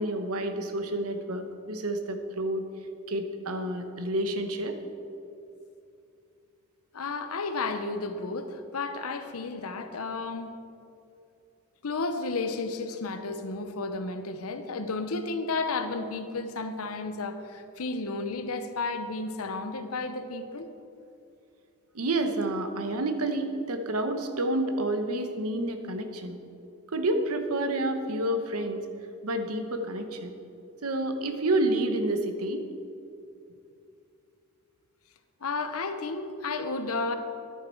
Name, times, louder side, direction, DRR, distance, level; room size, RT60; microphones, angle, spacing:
voice 1, 0.0-2.6 3.1-4.8 21.9-26.4 26.9-28.8 29.2-30.3 30.8-32.6, right 1 dB, 80° right, 7 dB, 1.0 m, -29 dB
voice 2, 6.9-10.5 11.8-20.7 35.4-37.1, left 3 dB, 80° left, 8 dB, 0.8 m, -32 dB
10.5 x 9.5 x 4.5 m, 2.6 s
head